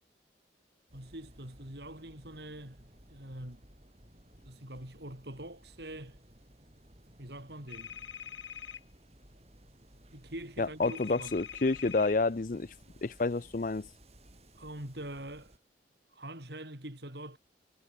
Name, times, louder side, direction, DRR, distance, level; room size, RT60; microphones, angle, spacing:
sound 1, 0.9-15.6, right 1 dB, 35° right, 5.7 m, -58 dB
voice 1, 0.9-3.6 4.5-6.2 7.2-7.9 10.1-11.4 14.5-15.5 16.1-17.4, right 1 dB, 65° right, 6.4 m, -44 dB
sound 2, 7.7-8.8 10.8-12.1, left 9 dB, 90° left, 3.5 m, -44 dB
voice 2, 10.6-12.7 13.0-13.9, left 3 dB, 45° left, 0.6 m, -29 dB
head